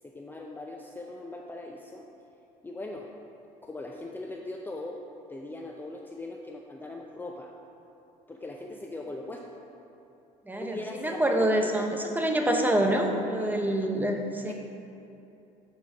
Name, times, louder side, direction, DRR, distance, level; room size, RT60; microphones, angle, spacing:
voice 1, 0.0-2.1 2.6-3.1 3.6-5.0 5.3-7.5 8.3-9.5 10.6-11.7 12.7-12.9 13.4-13.6 14.5-14.6, left 2 dB, 10° left, 0 dB, 0.6 m, -40 dB
voice 2, 10.5-14.5, right 1 dB, 10° right, 3 dB, 0.9 m, -26 dB
8.3 x 4.3 x 5.9 m, 2.8 s
supercardioid pair, 85°, 17 cm